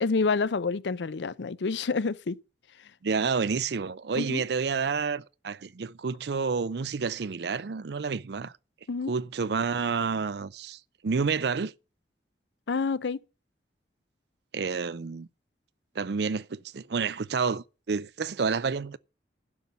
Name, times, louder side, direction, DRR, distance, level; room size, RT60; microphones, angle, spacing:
voice 1, 0.0-2.4 4.2-4.4 8.9-9.1 12.7-13.2, left 4 dB, 75° left, 0.5 m, -28 dB
voice 2, 3.0-8.5 9.1-11.7 14.5-15.3 16.0-19.0, right 5 dB, 65° right, 0.5 m, -29 dB
11.5 x 5.5 x 8.3 m
head